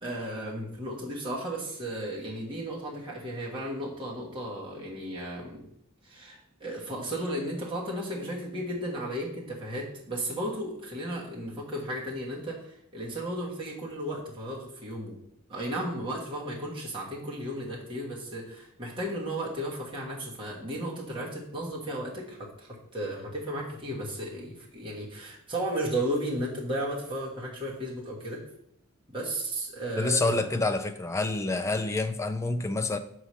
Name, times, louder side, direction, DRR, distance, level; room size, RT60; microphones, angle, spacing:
voice 1, 0.0-5.6 6.0-15.2 15.5-28.4 29.1-30.6, right 1 dB, 25° right, -5 dB, 1.2 m, -34 dB
voice 2, 30.0-33.0, left 2 dB, 15° left, 8 dB, 0.4 m, -27 dB
6.6 x 3.1 x 5.5 m, 0.72 s
head